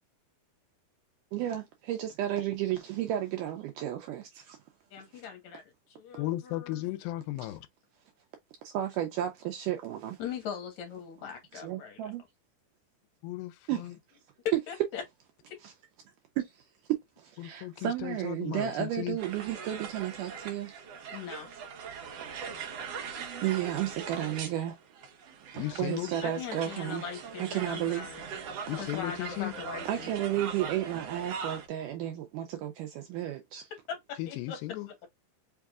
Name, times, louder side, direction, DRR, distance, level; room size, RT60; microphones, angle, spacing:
voice 1, 1.3-4.6 7.4-7.5 8.6-10.2 11.6-12.2 13.7-13.9 15.6-15.7 16.4-16.6 17.2-20.7 23.4-24.8 25.5-27.1 27.4-28.6 29.9-33.7, right 12 dB, 85° right, 1.8 m, -33 dB
voice 2, 4.9-5.6 6.0-6.8 10.2-12.1 14.7-15.0 15.5-15.6 21.1-21.6 26.2-28.2 28.8-30.1 33.9-35.1, left 7 dB, 60° left, 2.3 m, -40 dB
voice 3, 6.2-7.7 13.2-13.9 17.4-19.2 25.6-26.1 28.7-29.5 34.2-34.9, left 16 dB, 80° left, 2.2 m, -35 dB
sound 1, 19.2-31.7, right 6 dB, 65° right, 1.6 m, -41 dB
5.3 x 3.6 x 2.3 m
omnidirectional pair, 4.3 m